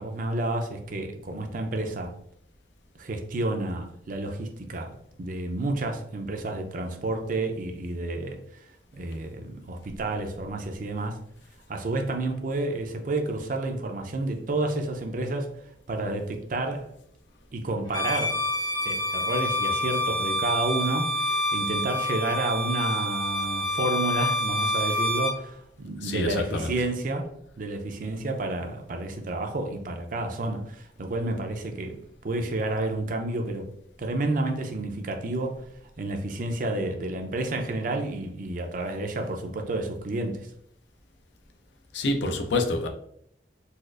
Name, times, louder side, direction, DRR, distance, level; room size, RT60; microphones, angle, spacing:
voice 1, 0.0-2.1 3.0-8.4 8.9-11.2 11.7-15.6 15.9-16.9 17.5-18.4 18.9-32.0 32.2-33.7 34.0-35.6 36.0-40.5, right 2 dB, 50° right, 4 dB, 0.5 m, -30 dB
Bowed string instrument, 17.9-25.4, left 1 dB, 20° left, 0.5 m, -27 dB
voice 2, 26.0-26.7 41.9-42.9, left 2 dB, 85° left, 4 dB, 0.5 m, -27 dB
4.1 x 2.4 x 2.4 m, 0.70 s
head